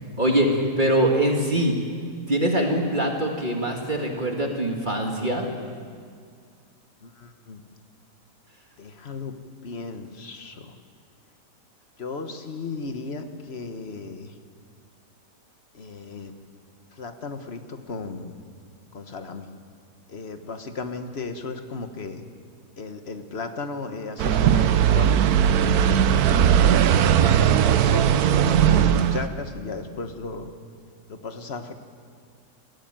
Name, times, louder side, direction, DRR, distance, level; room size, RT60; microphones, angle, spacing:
voice 1, 0.2-1.7 2.3-5.5, right 1 dB, 30° right, 1 dB, 1.9 m, -23 dB
voice 2, 7.0-7.6 8.8-9.3 9.6-10.8 12.0-14.4 15.7-16.3 16.9-18.4 18.9-19.5 20.1-22.2 22.8-25.3 25.8-26.6 27.0-30.5 31.1-31.7, left 3 dB, 40° left, 7 dB, 1.4 m, -35 dB
sound 1, 24.2-29.3, right 9 dB, 70° right, 1.1 m, -18 dB
20.0 x 15.0 x 9.0 m, 2.1 s
omnidirectional pair, 1.8 m